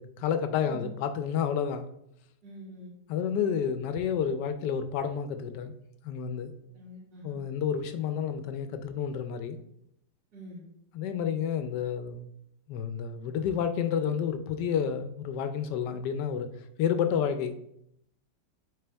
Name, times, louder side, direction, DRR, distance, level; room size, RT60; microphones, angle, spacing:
voice 1, 0.0-1.9 3.1-5.7 6.0-6.5 7.2-9.6 10.9-12.3 12.7-16.5 16.8-17.5, left 7 dB, 75° left, 10 dB, 1.2 m, -30 dB
voice 2, 2.4-2.9 6.7-7.4 10.3-10.6, right 1 dB, 75° right, -6 dB, 2.8 m, -45 dB
6.8 x 4.3 x 3.4 m, 0.75 s
omnidirectional pair, 1.9 m